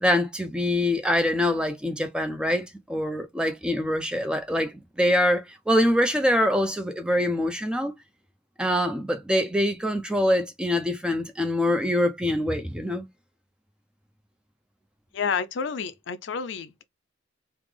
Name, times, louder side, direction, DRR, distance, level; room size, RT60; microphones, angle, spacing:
voice 1, 0.0-4.7 5.0-7.9 8.6-13.1, left 1 dB, 5° right, 0.4 m, -24 dB
voice 2, 15.1-16.8, left 6 dB, 60° left, 0.4 m, -30 dB
3.2 x 2.0 x 3.3 m
head